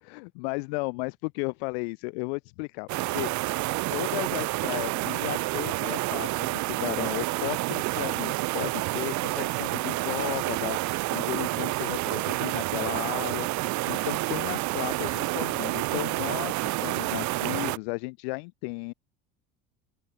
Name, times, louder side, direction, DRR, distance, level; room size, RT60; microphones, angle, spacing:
voice 1, 0.0-3.3 3.9-18.9, left 32 dB, 80° left, 2.6 m, -34 dB
sound 1, 2.9-17.8, right 21 dB, 65° right, 2.4 m, -29 dB
open air
supercardioid pair, 100°, 31 cm